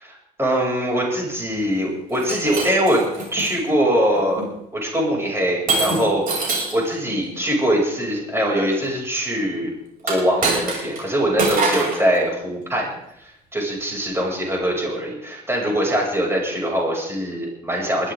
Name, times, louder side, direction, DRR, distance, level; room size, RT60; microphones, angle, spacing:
voice 1, 0.0-3.0 3.3-4.4 4.7-9.7 10.0-12.9 13.5-18.1, equal, 15° right, -2 dB, 7.2 m, -22 dB
Shatter, 2.1-3.5 4.2-4.5 5.7-6.8 10.0-11.0 11.4-12.0, right 3 dB, 55° right, 7.6 m, -23 dB
21.0 x 14.5 x 3.9 m, 0.78 s
cardioid pair, 110°, 17 cm